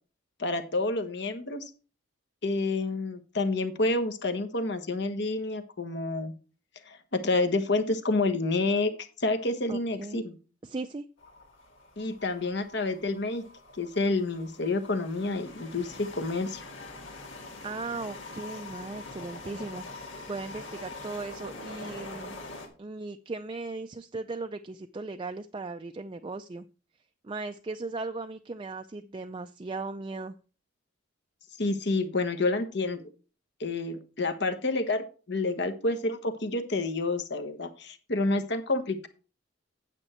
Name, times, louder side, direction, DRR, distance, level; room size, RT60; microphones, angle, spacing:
voice 1, 0.4-1.7 2.4-6.3 6.9-8.9 9.2-10.4 12.0-13.4 13.8-16.6 31.6-33.1 33.6-39.1, left 2 dB, 60° left, 8 dB, 1.2 m, -29 dB
voice 2, 9.7-10.2 10.6-11.1 17.6-22.4 22.8-26.6 27.2-30.4, right 3 dB, 25° right, 7 dB, 0.4 m, -37 dB
sound 1, 11.2-22.7, left 2 dB, 85° left, 2.3 m, -44 dB
8.9 x 7.7 x 4.4 m, 0.36 s
head